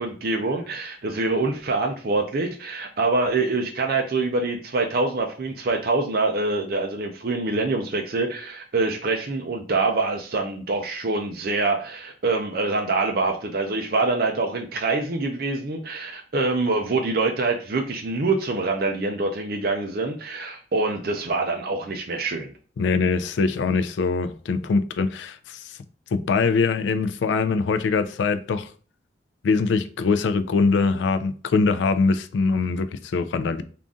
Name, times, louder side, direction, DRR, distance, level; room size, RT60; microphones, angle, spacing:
voice 1, 0.0-22.5, right 3 dB, 55° right, 0.4 m, -25 dB
voice 2, 22.8-25.8 26.1-28.7 29.4-33.6, left 4 dB, 80° left, 0.3 m, -23 dB
3.8 x 2.5 x 3.5 m
head